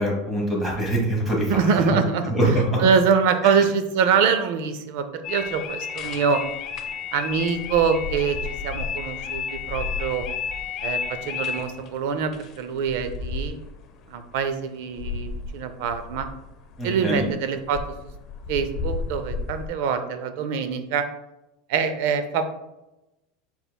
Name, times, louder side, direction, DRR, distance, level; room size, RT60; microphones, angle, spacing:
voice 1, 0.0-1.5 2.3-2.8 16.8-17.3, right 1 dB, 5° right, -2 dB, 0.9 m, -23 dB
voice 2, 1.5-6.4 7.1-8.4 8.6-10.2 10.8-13.6 14.1-16.3 16.8-17.8 18.5-21.1 21.7-22.5, right 6 dB, 55° right, 9 dB, 0.5 m, -24 dB
sound 1, 5.2-14.4 15.0-16.8 17.1-17.3 17.6-19.7, left 6 dB, 30° left, 0.4 m, -32 dB
5.3 x 4.4 x 2.2 m, 0.94 s
supercardioid pair, 180°, 0 cm